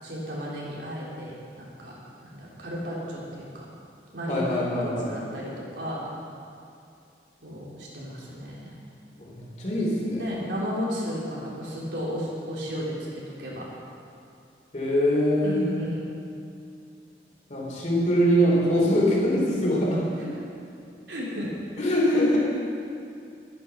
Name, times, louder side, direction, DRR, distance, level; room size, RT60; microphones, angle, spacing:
voice 1, 0.0-1.9 2.2-3.6 4.1-4.4 4.8-6.0 7.4-8.8 10.2-13.7 15.4-16.0 21.1-21.7, equal, 75° right, -5 dB, 3.3 m, -34 dB
voice 2, 4.3-5.1 9.2-10.2 14.7-15.8 17.5-20.3 21.8-22.4, equal, 45° left, -5 dB, 3.3 m, -23 dB
11.5 x 10.5 x 5.8 m, 2.5 s
head